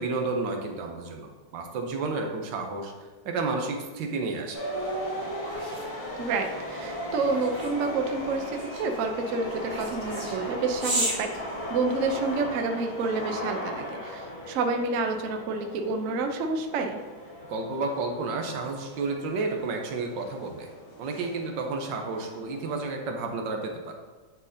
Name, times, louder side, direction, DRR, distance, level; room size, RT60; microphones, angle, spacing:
voice 1, 0.0-2.9 3.2-4.6 17.5-20.7 21.0-23.9, right 3 dB, 70° right, 3 dB, 1.4 m, -31 dB
sound 1, 4.5-22.9, equal, 50° left, 1.9 m, -37 dB
sound 2, 4.8-12.3, right 1 dB, 35° right, 2.2 m, -36 dB
voice 2, 6.2-11.3 11.7-17.0, right 3 dB, 90° right, 5 dB, 0.7 m, -29 dB
9.6 x 4.0 x 2.7 m, 1.3 s
omnidirectional pair, 2.2 m